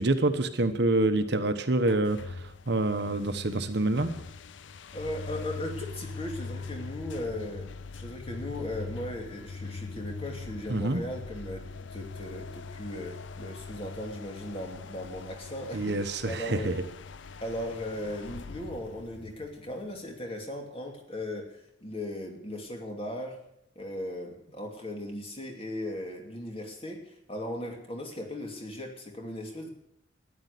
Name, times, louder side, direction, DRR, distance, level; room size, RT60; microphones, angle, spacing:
voice 1, 0.0-4.1 10.7-11.0 15.7-16.7, right 2 dB, 60° right, 9 dB, 1.1 m, -27 dB
sound 1, 1.8-20.3, left 4 dB, 70° left, 0.5 m, -42 dB
voice 2, 4.9-7.7 7.9-16.0 16.2-16.8 17.4-23.4 23.8-29.7, left 1 dB, 30° left, 2 dB, 2.7 m, -37 dB
13.5 x 10.5 x 8.3 m, 0.76 s
head